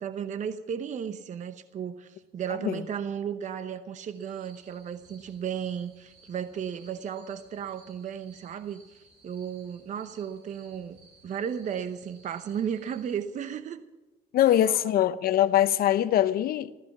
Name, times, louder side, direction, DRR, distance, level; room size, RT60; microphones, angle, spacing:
voice 1, 0.0-11.0 11.2-13.9 14.6-14.8, right 8 dB, 45° right, 0.8 m, -34 dB
sound 1, 4.1-13.2, right 3 dB, 85° right, 7.1 m, -59 dB
voice 2, 14.3-16.7, left 12 dB, 65° left, 0.8 m, -23 dB
14.5 x 14.5 x 6.0 m
cardioid pair, 110°, 17 cm